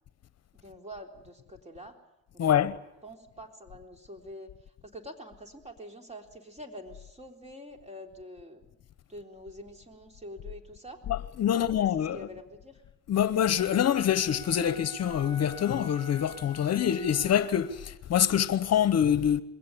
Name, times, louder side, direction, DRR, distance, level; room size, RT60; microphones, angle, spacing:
voice 1, 0.6-2.0 2.3-2.6 3.0-4.5 4.8-8.7 9.1-11.0 11.5-11.9 12.1-12.8, equal, 20° right, 3.7 m, -46 dB
voice 2, 2.4-2.8 11.1-12.2 13.1-19.4, left 9 dB, 55° left, 0.9 m, -25 dB
Wind instrument woodwind instrument, 13.5-17.8, equal, 15° left, 2.0 m, -47 dB
22.0 x 17.0 x 9.7 m
cardioid pair, 90°, 30 cm